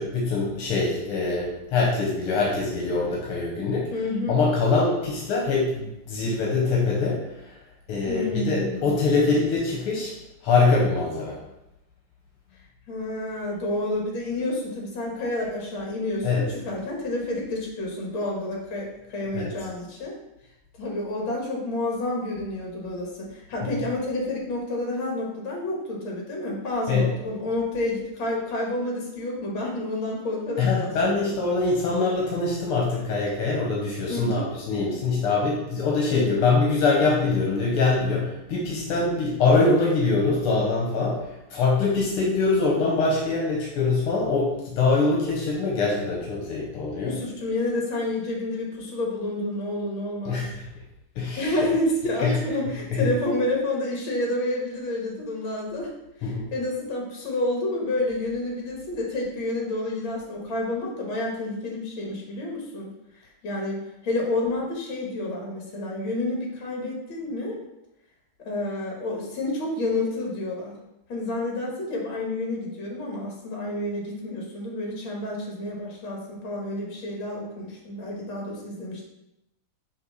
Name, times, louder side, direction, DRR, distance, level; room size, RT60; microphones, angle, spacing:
voice 1, 0.0-3.9 4.3-7.2 7.5-7.6 7.9-10.1 10.4-11.4 16.2-16.4 19.3-19.5 26.9-27.1 30.6-41.2 41.5-47.1 50.3-50.5 51.2-51.5 52.2-52.4 52.9-53.1 56.2-56.4, left 3 dB, 85° left, -3 dB, 1.9 m, -23 dB
voice 2, 3.9-4.4 8.1-8.9 12.9-20.2 20.8-31.3 34.1-34.5 36.1-36.4 47.0-50.4 51.4-55.9 56.2-62.9 63.2-63.8 64.0-67.6 68.5-70.8 71.1-79.0, left 2 dB, 70° left, -1 dB, 2.1 m, -29 dB
5.9 x 3.2 x 5.5 m, 0.89 s
omnidirectional pair, 2.4 m